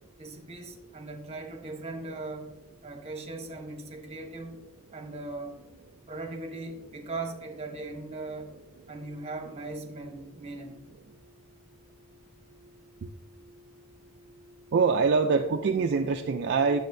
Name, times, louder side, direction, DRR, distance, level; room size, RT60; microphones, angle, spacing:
voice 1, 0.2-2.5 2.8-4.6 4.9-5.6 6.1-8.5 8.9-10.8, right 2 dB, 30° right, 1.0 m, -39 dB
voice 2, 14.7-16.8, right 5 dB, 50° right, 0.4 m, -24 dB
9.5 x 6.8 x 2.6 m
head